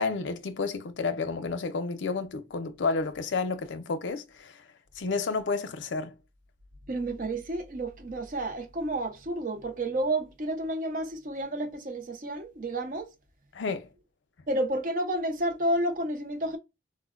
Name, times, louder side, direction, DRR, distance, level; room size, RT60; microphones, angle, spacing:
voice 1, 0.0-4.6 4.9-6.1 13.5-13.9, left 4 dB, 85° left, 0.5 m, -31 dB
voice 2, 6.9-13.1 14.5-16.6, right 1 dB, 45° right, 0.6 m, -30 dB
4.3 x 2.1 x 2.3 m
head